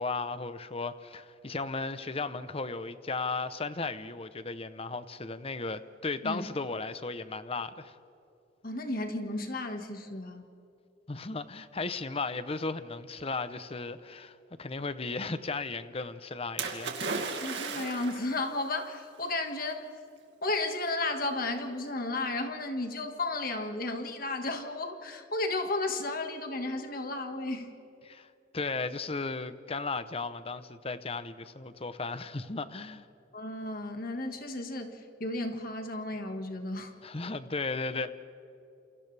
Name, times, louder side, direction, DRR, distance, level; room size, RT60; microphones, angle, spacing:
voice 1, 0.0-8.0 11.1-16.9 28.0-28.3 28.5-33.1 37.0-38.1, left 3 dB, 30° left, 0.8 m, -35 dB
voice 2, 8.6-10.5 17.4-19.9 20.4-27.7 33.3-36.9, left 2 dB, 50° left, 1.8 m, -33 dB
Splash splatter, 16.6-18.4 19.3-19.4, right 4 dB, 70° right, 2.3 m, -35 dB
29.0 x 28.5 x 3.4 m
head